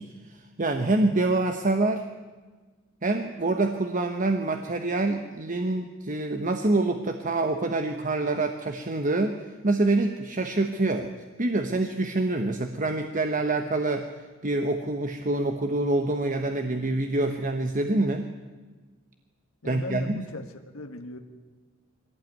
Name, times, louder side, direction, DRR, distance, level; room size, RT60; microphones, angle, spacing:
voice 1, 0.0-2.0 3.0-9.4 9.6-11.1 11.4-14.1 14.4-18.3 19.6-20.2, right 2 dB, 40° right, 6 dB, 1.2 m, -26 dB
voice 2, 19.6-21.2, left 2 dB, 85° left, 6 dB, 1.7 m, -37 dB
22.5 x 17.5 x 9.3 m, 1.3 s
head